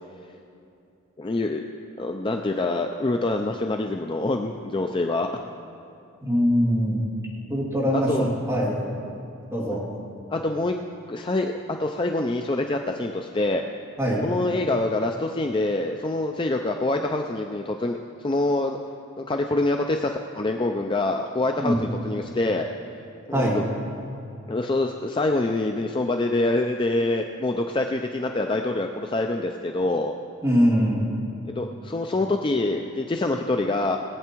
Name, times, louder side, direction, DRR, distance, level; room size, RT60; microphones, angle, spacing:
voice 1, 1.2-1.6 2.0-5.3 7.9-8.3 9.7-9.8 10.3-10.8 11.1-13.6 14.2-18.0 18.2-18.8 19.2-22.7 23.3-23.6 24.5-30.1 31.5-34.0, left 2 dB, 20° left, 4 dB, 0.4 m, -25 dB
voice 2, 6.2-7.0 7.5-8.8 9.5-9.8 14.0-14.3 21.6-21.8 23.3-23.7 30.4-31.0, equal, 15° right, -6 dB, 2.7 m, -22 dB
19.5 x 8.4 x 4.5 m, 2.6 s
head